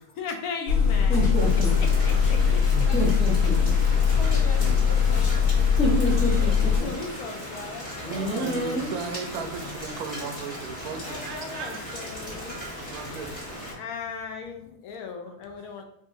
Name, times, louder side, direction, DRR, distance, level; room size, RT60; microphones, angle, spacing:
voice 1, 0.2-2.9 6.6-8.6 11.0-12.6 13.7-15.8, left 5 dB, 70° left, 3 dB, 1.1 m, -37 dB
sound 1, 0.7-6.8, left 6 dB, 85° left, 1.5 m, -21 dB
voice 2, 1.1-1.7 2.7-3.7 5.8-6.5 6.8-6.9 8.1-8.9, right 1 dB, 5° left, -5 dB, 0.6 m, -27 dB
Rain, 1.4-13.7, equal, 35° left, 1.7 m, -37 dB
voice 3, 8.0-11.8 12.9-13.3 15.3-15.4, right 5 dB, 75° right, 5 dB, 1.0 m, -36 dB
4.9 x 2.5 x 2.6 m, 0.75 s
omnidirectional pair, 1.7 m